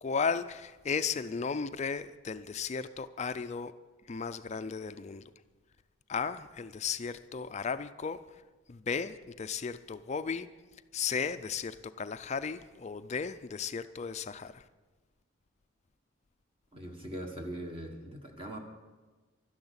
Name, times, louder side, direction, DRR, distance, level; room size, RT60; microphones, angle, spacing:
voice 1, 0.0-3.7 4.1-5.2 6.1-8.2 8.7-10.5 10.9-14.6, left 5 dB, 35° left, 12 dB, 0.4 m, -35 dB
voice 2, 16.7-18.6, right 1 dB, 25° right, 2 dB, 1.3 m, -41 dB
12.5 x 11.0 x 8.0 m, 1.3 s
head